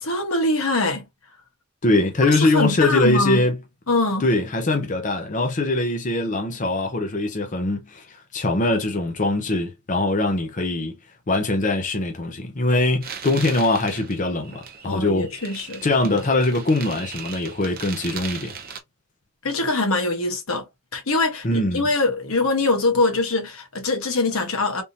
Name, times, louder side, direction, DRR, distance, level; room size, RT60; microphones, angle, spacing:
voice 1, 0.0-1.1 2.3-3.4 3.9-4.3 14.8-16.1 19.4-20.7 20.9-24.8, left 2 dB, 85° left, 1.2 m, -23 dB
voice 2, 1.8-3.6 4.2-10.9 11.3-15.3 15.8-18.5 21.4-21.8, left 2 dB, 35° left, 0.7 m, -22 dB
sound 1, 13.0-18.8, right 7 dB, 45° right, 0.7 m, -38 dB
3.5 x 2.6 x 2.8 m
head